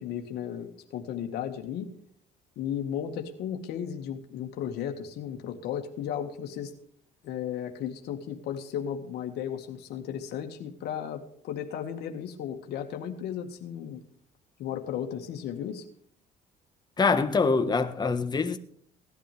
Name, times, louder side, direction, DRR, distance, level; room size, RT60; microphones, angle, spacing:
voice 1, 0.0-1.9 2.6-6.7 7.2-14.0 14.6-15.8, left 9 dB, 75° left, 1.9 m, -35 dB
voice 2, 17.0-18.6, left 4 dB, 25° left, 1.4 m, -24 dB
17.5 x 11.5 x 3.4 m
cardioid pair, 110°, 17 cm